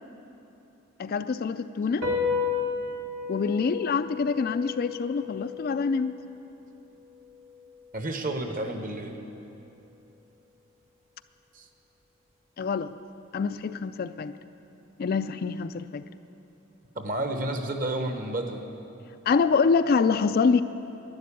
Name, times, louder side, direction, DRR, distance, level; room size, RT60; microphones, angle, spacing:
voice 1, 1.0-2.1 3.3-6.2 12.6-12.9 13.3-14.3 15.0-16.0 19.3-20.6, left 5 dB, 45° left, 11 dB, 0.3 m, -25 dB
sound 1, 2.0-8.7, left 5 dB, 65° right, 1.7 m, -34 dB
voice 2, 7.9-9.1 11.5-11.6 16.9-18.6, right 1 dB, 40° right, 5 dB, 1.1 m, -30 dB
12.0 x 10.5 x 8.5 m, 2.9 s
head